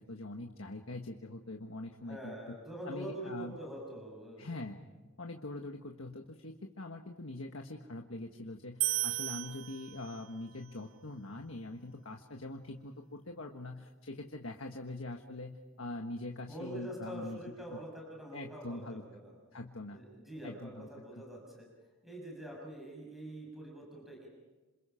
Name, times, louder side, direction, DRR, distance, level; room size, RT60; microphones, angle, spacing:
voice 1, 0.0-2.6 2.8-3.6 4.4-4.8 5.2-17.4 17.7-17.8 18.3-19.0 19.5-20.0 20.4-21.2, left 2 dB, 80° left, 3 dB, 1.4 m, -43 dB
voice 2, 2.0-4.5 16.5-19.3 19.9-21.7 22.0-24.3, right 1 dB, ahead, -2 dB, 6.5 m, -45 dB
sound 1, 8.8-10.4, right 15 dB, 70° right, 0.8 m, -35 dB
27.5 x 27.0 x 5.8 m, 1.2 s
head